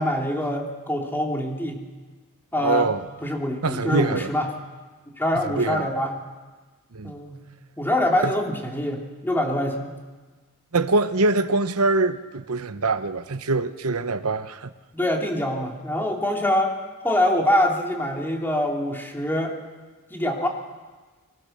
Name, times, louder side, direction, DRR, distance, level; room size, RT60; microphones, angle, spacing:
voice 1, 0.0-1.8 2.5-2.9 3.2-4.5 5.2-6.1 7.0-7.4 7.8-9.9 14.9-16.7 17.0-19.5 20.1-20.5, left 1 dB, 10° left, 3.3 m, -24 dB
voice 2, 2.6-3.0 3.6-4.3 5.5-5.9 6.9-7.1 8.2-8.3 10.7-14.7, right 3 dB, 75° right, 1.0 m, -23 dB
24.0 x 23.5 x 6.8 m
head